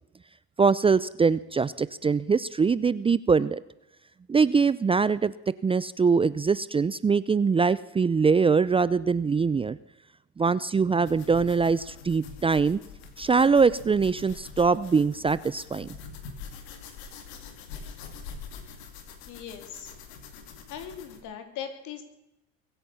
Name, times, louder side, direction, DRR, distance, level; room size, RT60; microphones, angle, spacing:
voice 1, 0.6-3.6 4.3-5.3 5.6-9.8 10.4-12.8 13.2-16.0, right 5 dB, 15° right, 17 dB, 0.5 m, -23 dB
sound 1, 11.0-21.2, left 5 dB, 85° left, 2.3 m, -44 dB
voice 2, 19.2-19.9 20.7-22.0, left 8 dB, 65° left, 7 dB, 3.2 m, -39 dB
22.5 x 8.6 x 7.0 m, 0.90 s
supercardioid pair, 80°, 32 cm